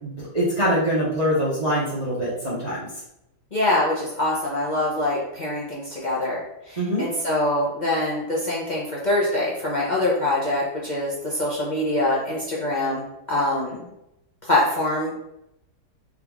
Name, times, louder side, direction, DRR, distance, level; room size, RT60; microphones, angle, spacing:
voice 1, 0.0-2.9 6.8-7.1, equal, 30° right, -8 dB, 0.7 m, -24 dB
voice 2, 3.5-6.4 6.7-13.9 14.4-15.2, left 1 dB, 45° left, -6 dB, 0.6 m, -24 dB
3.7 x 3.0 x 3.5 m, 0.87 s
omnidirectional pair, 1.8 m